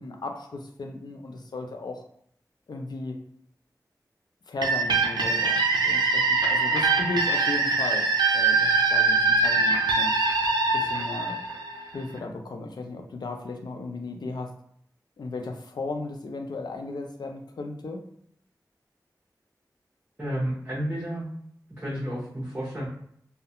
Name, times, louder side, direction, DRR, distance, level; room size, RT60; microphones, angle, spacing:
voice 1, 0.0-2.0 2.7-3.2 4.5-8.1 8.3-10.1 10.7-11.4 11.9-14.5 15.2-18.0, left 3 dB, 80° left, 3 dB, 0.4 m, -35 dB
sound 1, 4.6-12.2, right 3 dB, 80° right, 0.4 m, -23 dB
voice 2, 20.2-21.3 21.8-22.9, equal, 25° right, -7 dB, 0.7 m, -31 dB
2.3 x 2.1 x 2.8 m, 0.67 s
wide cardioid pair, 65°, 7 cm